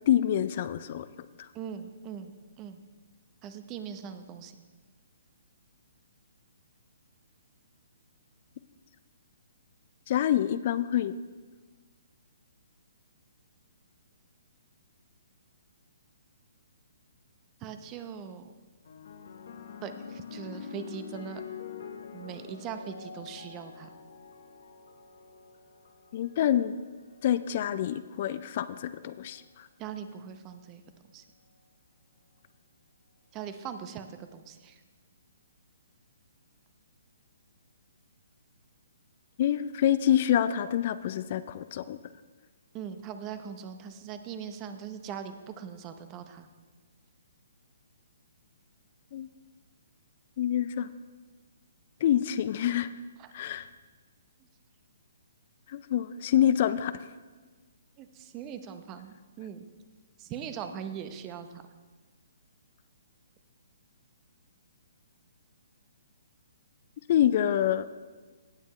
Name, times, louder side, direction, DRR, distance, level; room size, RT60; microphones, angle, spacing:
voice 1, 0.1-1.1 1.4-1.5 10.1-11.1 26.1-26.7 27.2-29.7 39.4-42.0 49.1-49.3 50.4-50.9 52.0-52.9 53.3-53.7 55.7-57.1 67.1-67.9, left 11 dB, 45° left, 13 dB, 0.4 m, -26 dB
voice 2, 1.5-2.8 3.4-4.6 17.6-18.5 19.8-21.4 22.1-23.9 29.8-30.8 31.1-31.2 33.3-34.8 42.7-46.5 53.2-53.3 58.0-59.7 60.2-61.6, right 8 dB, 25° right, 9 dB, 0.7 m, -41 dB
sound 1, 18.8-27.4 28.3-28.7, left 7 dB, 60° left, 0.9 m, -46 dB
17.0 x 7.2 x 3.2 m, 1.3 s
figure-of-eight pair, 130°, 0 cm